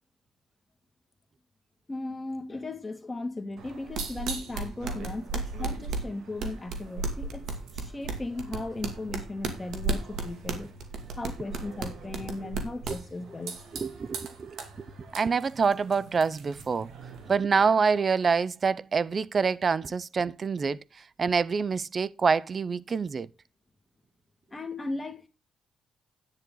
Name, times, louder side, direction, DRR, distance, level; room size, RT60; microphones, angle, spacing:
voice 1, 1.9-7.5 7.7-10.7 11.2-13.6 24.5-25.3, left 2 dB, 20° left, 2.3 m, -37 dB
sound 1, 3.6-17.3, right 3 dB, 75° right, 2.3 m, -36 dB
voice 2, 13.7-14.9 15.1-16.9 17.3-23.3, right 5 dB, 40° right, 0.5 m, -26 dB
10.5 x 9.7 x 3.9 m
cardioid pair, 90°, 0 cm